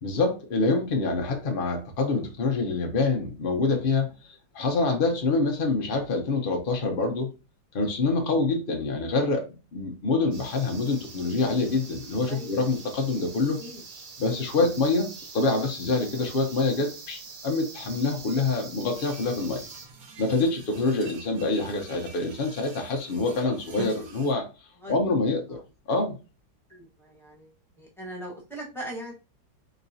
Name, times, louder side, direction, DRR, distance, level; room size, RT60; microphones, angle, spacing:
voice 1, 0.0-7.3 7.7-9.5 9.7-13.6 14.2-19.6 20.2-24.5 24.9-25.6 25.9-26.2, left 3 dB, 65° left, 2 dB, 0.5 m, -26 dB
sound 1, 10.3-19.9, right 4 dB, 65° right, 1.4 m, -44 dB
sound 2, 18.9-24.3, right 4 dB, 85° right, 1.6 m, -45 dB
voice 2, 26.7-27.5 27.8-29.1, right 1 dB, ahead, -3 dB, 1.0 m, -40 dB
4.0 x 3.3 x 2.7 m, 0.31 s
omnidirectional pair, 2.0 m